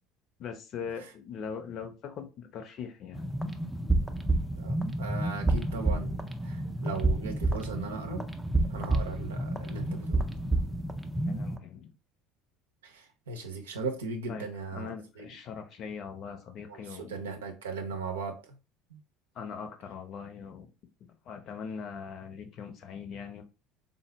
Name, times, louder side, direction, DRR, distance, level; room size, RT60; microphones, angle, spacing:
voice 1, 0.4-3.2 10.7-10.8 11.3-11.9 14.3-14.5 14.7-17.2 19.3-20.7 21.1-23.4, left 6 dB, 45° left, 0.6 m, -41 dB
sound 1, 3.1-11.6, right 2 dB, 5° right, 0.4 m, -30 dB
voice 2, 4.6-6.2 6.4-8.2 8.7-10.2 12.8-15.2 16.7-18.6 18.9-19.0, right 4 dB, 75° right, 0.6 m, -38 dB
3.9 x 2.0 x 3.2 m
figure-of-eight pair, 65°, 0 cm